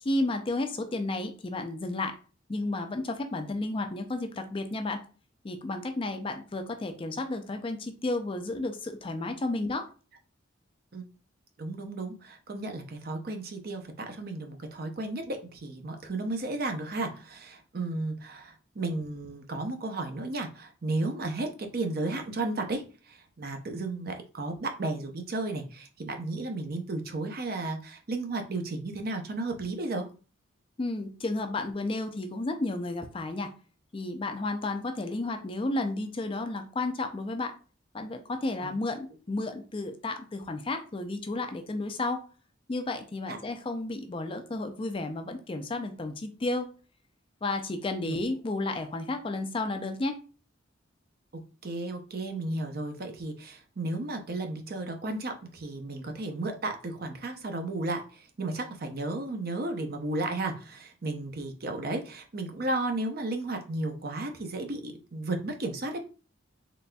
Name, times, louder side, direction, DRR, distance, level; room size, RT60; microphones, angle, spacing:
voice 1, 0.0-2.2 2.5-5.0 5.4-9.9 30.8-33.5 33.9-37.5 37.9-42.2 42.7-46.7 47.4-50.2, left 2 dB, 25° left, 6 dB, 0.4 m, -32 dB
voice 2, 11.6-30.1 38.6-38.7 43.3-43.4 48.1-48.2 51.3-66.0, right 2 dB, 50° right, 5 dB, 0.6 m, -34 dB
4.0 x 3.3 x 2.2 m, 0.36 s
head